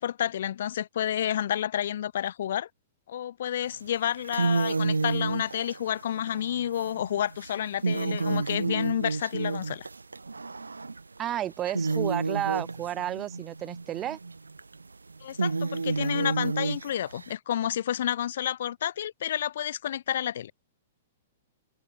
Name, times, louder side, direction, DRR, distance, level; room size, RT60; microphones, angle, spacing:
voice 1, 0.0-2.7 3.1-9.9 15.2-20.5, left 10 dB, 65° left, 1.5 m, -30 dB
sound 1, 3.7-3.9 4.2-11.2 11.5-17.3, right 3 dB, 90° right, 1.2 m, -31 dB
voice 2, 11.2-14.2, right 12 dB, 25° right, 1.8 m, -32 dB
hypercardioid pair, 110°, 0 cm